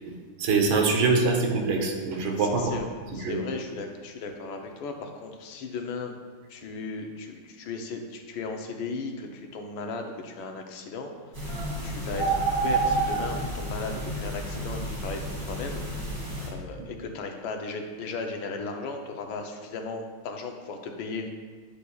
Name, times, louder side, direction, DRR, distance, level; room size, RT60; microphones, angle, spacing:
voice 1, 0.4-2.8 3.2-3.4, right 4 dB, 80° right, 2 dB, 1.7 m, -24 dB
voice 2, 2.4-2.9 3.1-6.1 6.5-11.1 11.8-16.1 16.4-21.3, left 4 dB, 75° left, 4 dB, 1.4 m, -36 dB
sound 1, 11.3-16.5, right 2 dB, 60° right, 3.1 m, -29 dB
10.5 x 6.7 x 2.3 m, 1.5 s
omnidirectional pair, 2.3 m